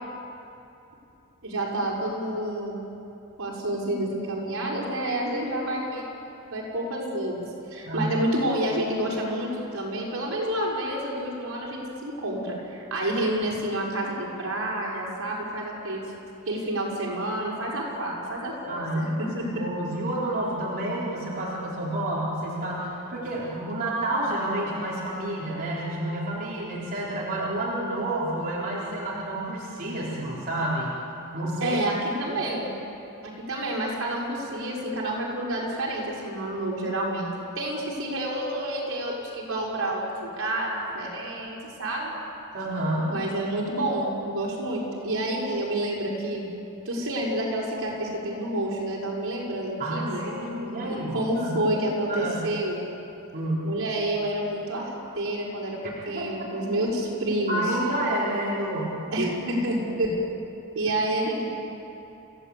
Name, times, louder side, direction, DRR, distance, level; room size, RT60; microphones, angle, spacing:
voice 1, 1.4-2.8 3.4-6.1 6.5-7.4 7.7-16.0 16.5-19.6 31.6-32.7 33.2-37.3 37.6-42.1 43.1-46.5 46.9-50.3 50.9-52.8 53.6-55.8 56.0-57.6 59.1-60.1 60.8-61.5, right 1 dB, 65° right, -3 dB, 5.7 m, -29 dB
voice 2, 18.7-30.9 31.3-31.8 42.5-43.1 49.8-51.6 52.1-52.5 53.3-53.7 56.0-56.7 57.5-59.0, right 1 dB, 45° right, -7 dB, 4.0 m, -29 dB
29.5 x 16.0 x 8.6 m, 2.9 s
head